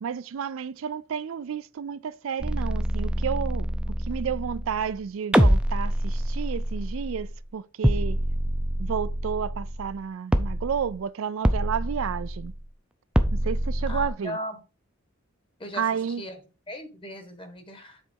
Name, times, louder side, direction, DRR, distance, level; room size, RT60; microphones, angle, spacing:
voice 1, 0.0-3.8 4.1-8.2 8.8-12.5 13.3-14.4 15.7-16.2, right 7 dB, 70° right, 0.4 m, -31 dB
sound 1, 2.4-5.0 5.3-7.4 7.8-10.0 10.3-11.0 11.4-12.7 13.2-14.1, equal, 5° right, 0.5 m, -26 dB
voice 2, 13.9-14.6 15.6-15.8 16.2-16.4 16.7-18.0, equal, 25° left, 1.3 m, -37 dB
7.6 x 4.1 x 4.5 m
head